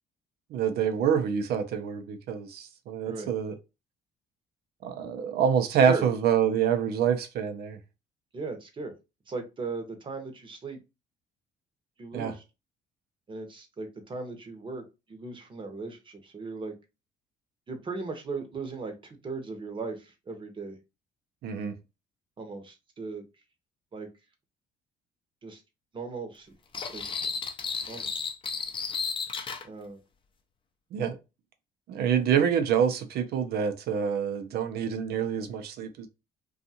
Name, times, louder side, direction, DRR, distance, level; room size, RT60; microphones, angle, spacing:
voice 1, 0.5-3.5 4.8-7.8 12.1-12.3 21.4-21.7 30.9-31.2 31.9-36.1, right 7 dB, 70° right, 0.6 m, -26 dB
voice 2, 8.3-8.9 9.3-10.8 12.0-12.4 13.3-16.7 17.7-20.8 22.4-23.2 23.9-24.1 25.4-25.6 25.9-26.5 26.9-27.2 27.9-28.3 29.6-30.0, right 3 dB, 30° right, 0.8 m, -37 dB
sound 1, 26.7-29.6, left 5 dB, 30° left, 0.5 m, -33 dB
2.5 x 2.4 x 2.7 m
cardioid pair, 110°, 17 cm